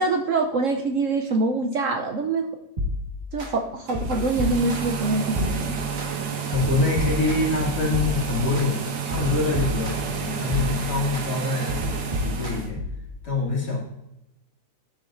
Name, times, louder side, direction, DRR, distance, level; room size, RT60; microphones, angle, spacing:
voice 1, 0.0-2.5 3.3-5.8, right 3 dB, 60° right, 4 dB, 0.9 m, -24 dB
sound 1, 2.8-3.5 3.9-5.0 5.3-6.1 6.5-8.7 9.1-10.2 10.5-11.3 11.7-13.1, left 2 dB, 30° right, 1.5 m, -30 dB
sound 2, 3.8-12.7, right 7 dB, 85° right, 1.7 m, -30 dB
voice 2, 6.5-12.8 13.2-13.8, left 3 dB, 70° left, -4 dB, 3.2 m, -25 dB
12.5 x 6.7 x 2.6 m, 0.89 s
omnidirectional pair, 1.8 m